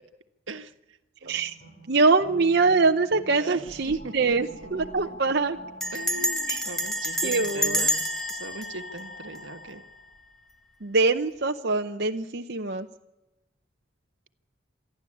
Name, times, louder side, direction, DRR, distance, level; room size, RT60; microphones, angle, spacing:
voice 1, 0.5-1.3 3.3-4.3 4.6-4.7 5.1-5.2 5.9-9.8, right 3 dB, 85° right, 7 dB, 1.4 m, -40 dB
sound 1, 1.2-7.8, right 2 dB, 30° left, 6.9 m, -50 dB
voice 2, 1.9-5.6 6.5-6.6 7.2-7.9 10.8-12.9, right 3 dB, 55° right, 5 dB, 0.8 m, -24 dB
sound 2, 3.0-10.3, left 2 dB, 50° left, 3.1 m, -47 dB
Bell, 3.7-4.0 4.3-4.4 4.6-5.0 5.8-9.9, equal, ahead, 1.5 m, -29 dB
27.0 x 11.5 x 8.5 m, 0.98 s
head